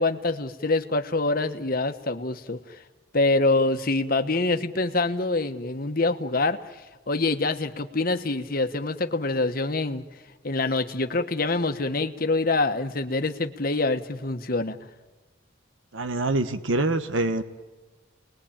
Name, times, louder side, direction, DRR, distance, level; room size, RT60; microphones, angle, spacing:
voice 1, 0.0-2.8 3.1-6.6 7.1-10.0 10.4-14.8, left 2 dB, 50° left, 8 dB, 1.4 m, -25 dB
voice 2, 15.9-17.4, right 2 dB, 90° right, 10 dB, 1.2 m, -25 dB
30.0 x 21.0 x 8.8 m, 1.3 s
head